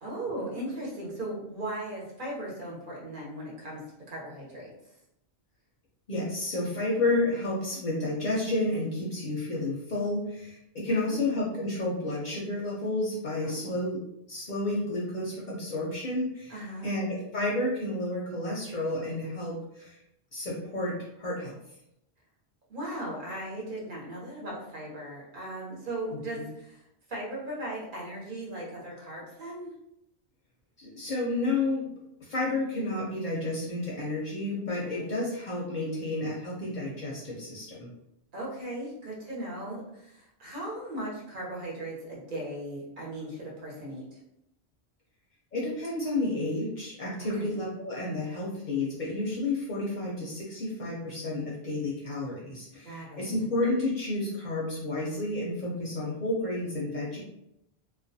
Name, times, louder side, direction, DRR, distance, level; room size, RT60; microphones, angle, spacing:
voice 1, 0.0-4.7 10.9-11.3 13.4-13.7 16.5-16.9 22.7-26.8 27.1-29.7 34.9-35.1 38.3-44.0 47.2-47.5 52.8-53.2, right 1 dB, 55° right, -4 dB, 0.9 m, -38 dB
voice 2, 6.1-16.6 16.8-20.0 20.3-21.6 26.4-26.5 30.8-31.9 32.3-37.9 45.5-57.2, left 2 dB, 55° left, -4 dB, 0.6 m, -31 dB
2.3 x 2.2 x 2.6 m, 0.80 s
omnidirectional pair, 1.1 m